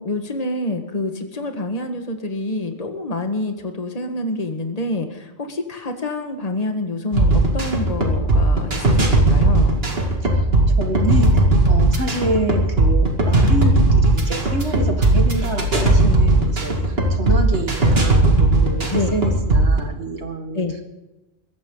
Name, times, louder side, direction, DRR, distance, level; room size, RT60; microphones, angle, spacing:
voice 1, 0.0-9.8 18.9-19.1 20.5-20.7, left 2 dB, 35° left, 5 dB, 1.7 m, -27 dB
sound 1, 7.1-19.8, right 2 dB, 60° right, 2.6 m, -17 dB
voice 2, 10.8-16.8 17.1-20.6, right 1 dB, 80° right, 5 dB, 2.3 m, -27 dB
22.5 x 16.0 x 3.9 m, 1.0 s
omnidirectional pair, 1.1 m